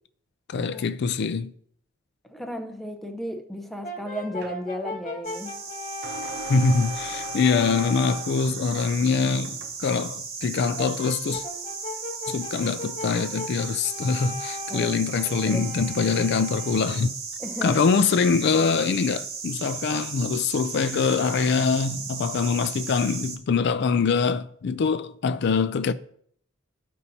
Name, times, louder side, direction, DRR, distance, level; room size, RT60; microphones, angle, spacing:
voice 1, 0.5-1.5 6.5-11.4 12.3-17.1 17.6-25.9, left 5 dB, 55° left, 0.4 m, -24 dB
voice 2, 2.3-5.6 14.7-14.9 15.2-15.6 17.4-17.8, equal, ahead, 0.7 m, -34 dB
Brass instrument, 3.8-8.4 10.8-17.1, left 2 dB, 40° left, 1.3 m, -38 dB
sound 1, 4.4-4.6 6.0-9.8, right 4 dB, 50° right, 0.6 m, -43 dB
sound 2, 5.2-23.4, right 5 dB, 80° right, 1.6 m, -36 dB
13.5 x 5.5 x 2.8 m
head